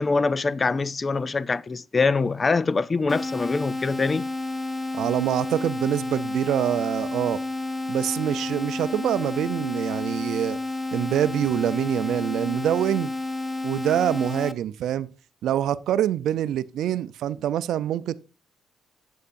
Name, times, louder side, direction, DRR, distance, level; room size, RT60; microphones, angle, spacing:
voice 1, 0.0-4.3, left 4 dB, 30° left, 0.4 m, -24 dB
sound 1, 3.1-14.5, left 2 dB, 10° left, 0.9 m, -30 dB
voice 2, 4.9-7.4 7.9-10.6 10.9-13.1 13.6-15.1 15.4-18.1, right 11 dB, 75° right, 0.5 m, -25 dB
11.5 x 8.4 x 2.6 m
cardioid pair, 90°, 0 cm